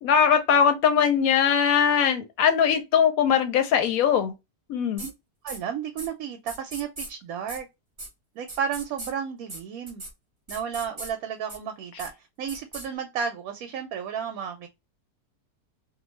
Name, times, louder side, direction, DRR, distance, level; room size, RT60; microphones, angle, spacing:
voice 1, 0.0-4.3 4.7-5.1, left 7 dB, 70° left, 0.9 m, -21 dB
sound 1, 5.0-5.1 5.5-5.6 6.0-6.1 6.5-7.1 7.5-7.6 8.0-8.1 8.5-9.1 9.5-9.6 9.9-10.1 10.5-11.1 11.5-11.6 12.0-12.1 12.5-12.9, right 2 dB, 25° right, 0.7 m, -38 dB
voice 2, 5.4-7.7 8.4-10.0 10.5-12.1 12.4-14.7, right 7 dB, 70° right, 1.0 m, -32 dB
2.6 x 2.2 x 3.0 m
omnidirectional pair, 1.7 m